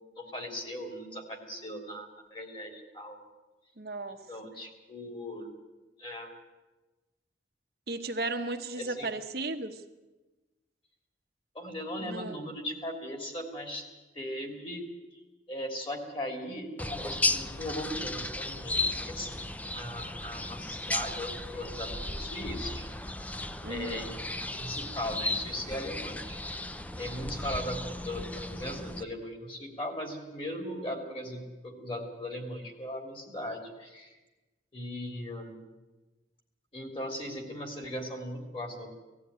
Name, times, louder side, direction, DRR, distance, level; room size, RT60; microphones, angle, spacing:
voice 1, 0.2-3.2 4.3-5.5 6.0-6.3 8.8-9.1 11.5-13.8 14.1-14.8 15.1-15.2 15.5-18.8 19.1-19.3 19.7-22.9 23.7-26.4 27.0-34.2 34.7-35.6 36.7-38.9, left 1 dB, 30° left, 4 dB, 3.2 m, -38 dB
voice 2, 3.8-4.2 7.9-9.8 12.0-12.4 23.6-24.1, right 2 dB, 60° right, 5 dB, 1.2 m, -35 dB
sound 1, 16.8-29.0, left 2 dB, 10° left, 0.6 m, -35 dB
19.0 x 14.5 x 9.6 m, 1.1 s
head